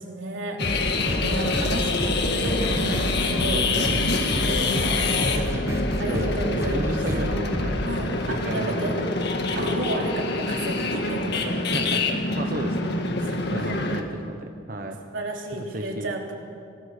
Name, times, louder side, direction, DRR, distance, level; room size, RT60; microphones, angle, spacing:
voice 1, 0.0-3.6 4.4-5.0 6.0-7.0 7.8-8.9 9.6-11.6 13.2-13.7 15.1-16.3, right 2 dB, 65° right, 0 dB, 3.5 m, -33 dB
sound 1, 0.6-14.0, left 3 dB, 55° left, 1.8 m, -26 dB
sound 2, 0.6-9.0, equal, 15° right, 1.9 m, -30 dB
voice 2, 3.5-4.0 5.3-7.8 8.2-9.3 9.6-9.8 11.7-13.0 13.5-15.0 15.5-16.3, right 1 dB, 45° right, 4 dB, 1.1 m, -34 dB
26.0 x 19.0 x 6.8 m, 2.4 s
head